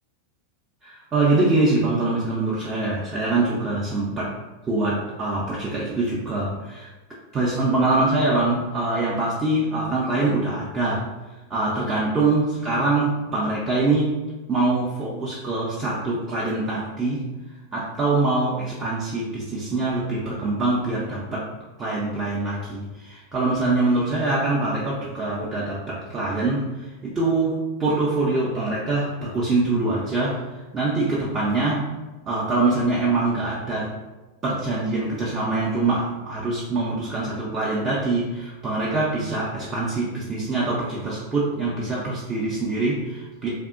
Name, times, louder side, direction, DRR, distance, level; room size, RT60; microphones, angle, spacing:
voice 1, 0.8-4.4 4.6-6.9 7.3-11.1 11.5-14.2 14.5-17.2 17.7-21.5 21.8-31.9 32.3-33.9 34.4-43.5, right 2 dB, 25° right, -6 dB, 0.4 m, -24 dB
2.6 x 2.0 x 2.4 m, 1.1 s
figure-of-eight pair, 90°, 0 cm